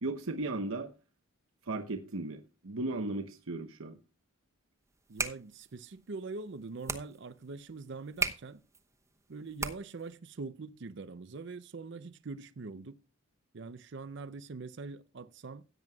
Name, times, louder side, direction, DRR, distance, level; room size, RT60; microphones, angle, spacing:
voice 1, 0.0-0.9 1.7-4.0, right 2 dB, 85° right, 1.0 m, -36 dB
sound 1, 4.9-10.1, right 3 dB, 15° right, 1.0 m, -39 dB
voice 2, 5.1-8.6 9.3-13.0 13.5-15.6, right 4 dB, 60° right, 0.5 m, -43 dB
16.5 x 9.2 x 2.3 m
head